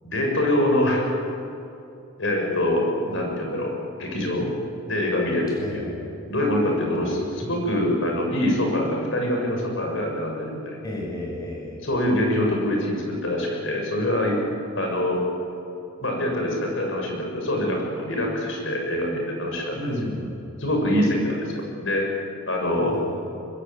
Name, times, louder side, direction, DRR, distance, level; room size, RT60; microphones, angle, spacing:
voice 1, 0.0-1.2 2.2-3.7 4.0-4.5 4.9-5.9 6.3-10.8 11.8-14.4 14.7-15.2 16.0-19.9 20.6-23.0, left 1 dB, 65° left, 1 dB, 6.8 m, -24 dB
voice 2, 5.6-6.1 7.0-7.5 10.8-11.7 19.7-20.3 22.9-23.3, equal, 20° left, -2 dB, 7.6 m, -32 dB
23.0 x 21.0 x 9.5 m, 2.8 s
head